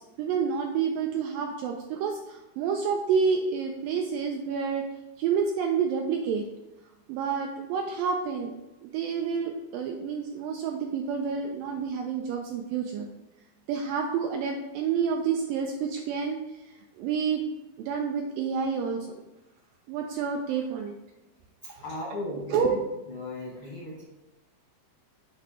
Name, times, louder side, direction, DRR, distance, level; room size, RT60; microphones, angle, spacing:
voice 1, 0.0-4.9 5.2-6.5 7.1-8.5 8.8-13.1 13.7-16.4 17.0-17.5 17.8-19.1 19.9-21.0 21.7-21.8 22.3-22.8, right 6 dB, 85° right, 2 dB, 2.0 m, -29 dB
voice 2, 21.8-22.6 23.1-24.0, left 2 dB, 70° left, -5 dB, 1.3 m, -36 dB
8.1 x 2.8 x 4.8 m, 0.99 s
omnidirectional pair, 4.4 m